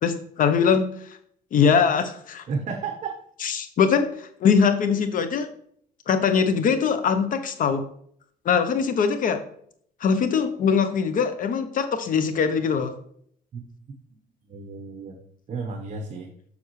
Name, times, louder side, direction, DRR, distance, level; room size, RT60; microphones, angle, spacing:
voice 1, 0.0-1.2 1.5-2.4 3.4-5.5 6.1-7.9 8.4-9.4 10.0-12.9, left 6 dB, 55° left, 9 dB, 0.8 m, -22 dB
voice 2, 2.5-3.1 13.5-13.6 13.9-14.0 14.5-15.2 15.5-16.3, right 4 dB, 45° right, 3 dB, 1.0 m, -32 dB
6.9 x 6.7 x 3.2 m, 0.64 s
cardioid pair, 110°, 17 cm